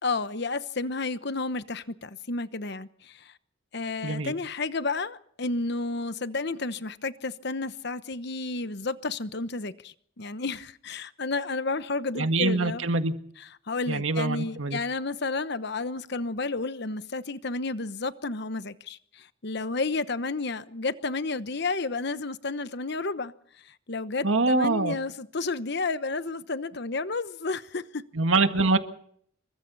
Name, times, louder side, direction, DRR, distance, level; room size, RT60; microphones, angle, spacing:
voice 1, 0.0-3.3 3.7-12.8 13.7-23.3 23.6-28.0, left 3 dB, 55° left, 1.0 m, -31 dB
voice 2, 4.0-4.3 12.1-13.1 13.9-14.8 24.2-24.9 28.1-28.8, right 3 dB, 80° right, 1.8 m, -24 dB
27.5 x 23.5 x 4.1 m
head